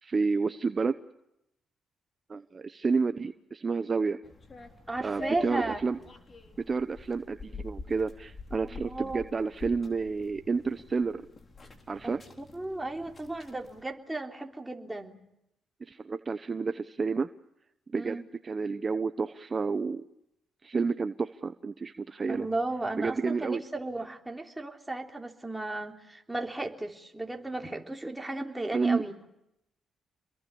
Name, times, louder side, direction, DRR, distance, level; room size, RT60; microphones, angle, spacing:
voice 1, 0.0-1.0 2.3-4.2 5.0-6.0 6.7-11.2 11.9-12.2 15.9-17.3 17.9-18.2 18.4-20.0 20.6-22.5 23.0-23.6 28.7-29.0, right 4 dB, 35° right, 10 dB, 1.0 m, -30 dB
sound 1, 4.2-13.8, left 3 dB, 35° left, 4.0 m, -46 dB
voice 2, 4.9-5.8 8.6-9.2 12.0-15.2 17.9-18.3 22.3-29.2, right 2 dB, 10° right, 3 dB, 3.4 m, -35 dB
28.5 x 22.0 x 7.0 m, 0.84 s
cardioid pair, 90°, 0 cm